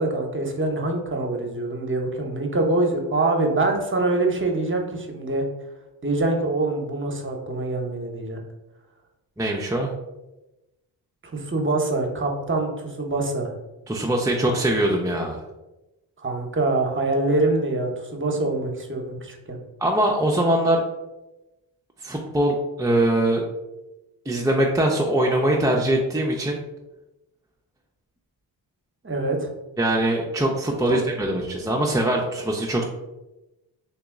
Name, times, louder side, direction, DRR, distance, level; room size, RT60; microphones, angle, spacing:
voice 1, 0.0-5.4 6.0-8.4 11.3-13.5 16.2-19.6 29.0-29.5 30.9-31.0, right 2 dB, 25° right, 2 dB, 0.9 m, -24 dB
voice 2, 9.4-9.9 13.9-15.4 19.8-20.8 22.0-23.4 24.3-26.6 29.8-32.8, right 1 dB, 5° right, -2 dB, 0.5 m, -22 dB
3.0 x 2.9 x 3.6 m, 1.0 s
supercardioid pair, 40°, 47 cm